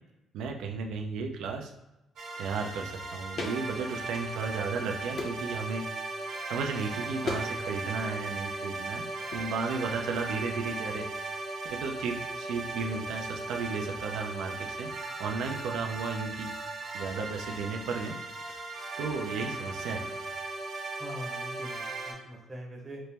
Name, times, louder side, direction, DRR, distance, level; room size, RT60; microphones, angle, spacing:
voice 1, 0.3-1.7 2.4-5.9 6.4-9.0 9.3-11.1 11.7-14.9 15.2-18.2 18.5-18.6 19.0-20.1, right 4 dB, 85° right, 3 dB, 0.5 m, -34 dB
sound 1, 2.2-22.1, right 3 dB, 60° right, 1.0 m, -37 dB
sound 2, 3.4-3.6 4.0-4.7 5.1-5.5 7.2-7.5 7.8-8.2 9.3-9.5, left 3 dB, 45° left, 0.6 m, -37 dB
voice 2, 21.0-23.0, equal, 15° right, -3 dB, 0.7 m, -42 dB
4.2 x 2.0 x 3.3 m, 0.94 s
cardioid pair, 140°, 0 cm